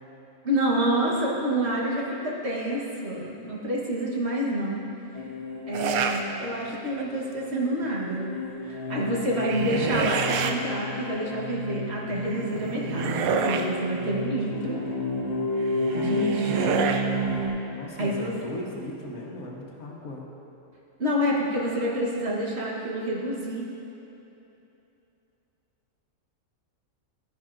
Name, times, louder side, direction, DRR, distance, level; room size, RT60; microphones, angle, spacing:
voice 1, 0.4-4.8 5.7-8.3 8.7-14.8 15.9-16.7 18.0-18.3 21.0-23.7, right 1 dB, 50° right, -4 dB, 1.5 m, -28 dB
sound 1, 5.1-17.5, left 1 dB, 45° left, 1.4 m, -31 dB
Witch Attack, 5.7-6.2 6.7-7.2 9.2-10.5 12.3-13.7 15.7-17.1, right 6 dB, 80° right, 1.0 m, -28 dB
voice 2, 17.7-20.2, left 1 dB, 75° left, -2 dB, 1.6 m, -37 dB
12.5 x 9.9 x 2.5 m, 2.9 s
omnidirectional pair, 1.5 m